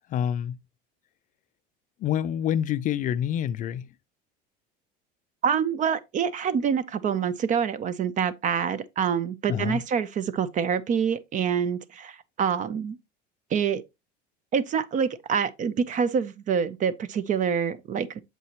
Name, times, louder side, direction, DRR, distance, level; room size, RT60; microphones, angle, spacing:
voice 1, 0.1-0.6 2.0-3.9 9.5-9.8, left 10 dB, 40° left, 0.4 m, -27 dB
voice 2, 5.4-13.0 13.5-13.8 14.5-18.2, right 7 dB, 35° right, 0.6 m, -26 dB
7.4 x 5.5 x 2.9 m
supercardioid pair, 120°, 21 cm